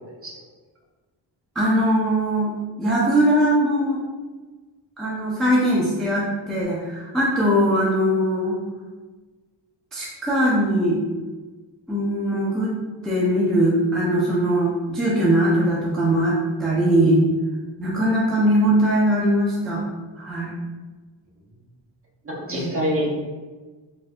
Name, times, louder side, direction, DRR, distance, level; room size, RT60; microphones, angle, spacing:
voice 1, 1.6-4.0 5.0-8.6 9.9-11.0 11.9-12.7 13.0-17.2 17.8-19.8 20.2-20.5 22.5-22.7, right 1 dB, ahead, -7 dB, 0.5 m, -21 dB
voice 2, 22.2-23.1, equal, 30° right, -4 dB, 0.8 m, -26 dB
4.2 x 2.6 x 2.3 m, 1.3 s
wide cardioid pair, 130°, 47 cm